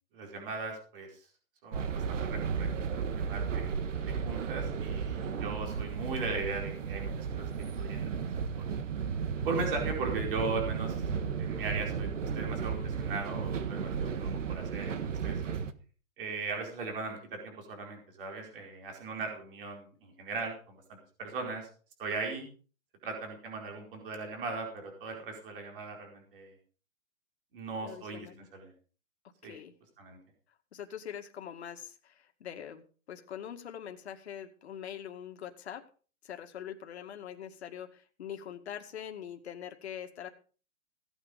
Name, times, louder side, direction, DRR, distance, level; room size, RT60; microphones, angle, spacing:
voice 1, 0.1-1.1 1.6-3.8 4.0-7.5 7.8-8.7 9.4-11.0 11.4-12.1 12.3-15.4 16.2-21.7 22.0-22.5 23.0-26.5 27.5-28.7 29.4-29.6 30.0-30.2, right 3 dB, 40° right, 2 dB, 4.6 m, -38 dB
sound 1, 1.7-15.7, right 6 dB, 60° right, 1.6 m, -34 dB
voice 2, 27.8-28.5 29.4-29.7 30.7-35.8 36.2-40.3, left 9 dB, 50° left, 5 dB, 2.2 m, -43 dB
16.5 x 9.2 x 5.2 m, 0.39 s
hypercardioid pair, 170°, 42 cm